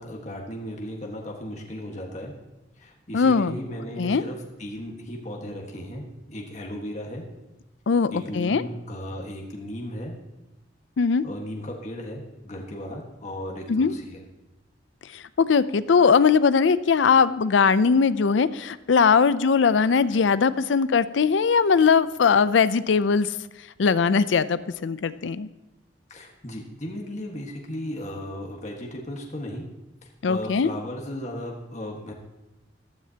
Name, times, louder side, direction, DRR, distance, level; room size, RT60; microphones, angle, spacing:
voice 1, 0.0-2.3 2.8-7.2 8.1-10.2 11.2-14.2 26.1-29.6 30.0-32.1, equal, 40° left, 0 dB, 1.5 m, -36 dB
voice 2, 3.1-3.5 4.0-4.2 7.9-8.6 11.0-11.2 13.7-13.9 15.1-23.3 23.8-25.5 30.2-30.7, left 5 dB, 85° left, 15 dB, 0.5 m, -20 dB
15.0 x 12.5 x 2.9 m, 1.0 s
head